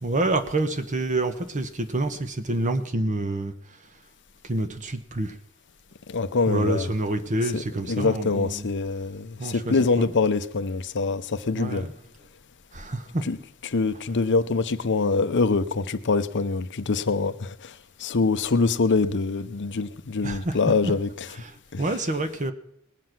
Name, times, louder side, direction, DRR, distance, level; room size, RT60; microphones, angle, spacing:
voice 1, 0.0-3.8 4.4-5.4 6.5-8.7 9.4-10.1 11.5-11.9 12.7-13.2 13.9-14.2 20.2-20.9 21.3-22.5, right 2 dB, 35° right, 1.2 m, -28 dB
voice 2, 6.1-6.9 7.5-7.6 7.9-11.9 13.3-13.4 13.6-17.7 18.0-21.3 21.7-21.8, left 4 dB, 55° left, 0.7 m, -24 dB
20.5 x 7.5 x 6.0 m
head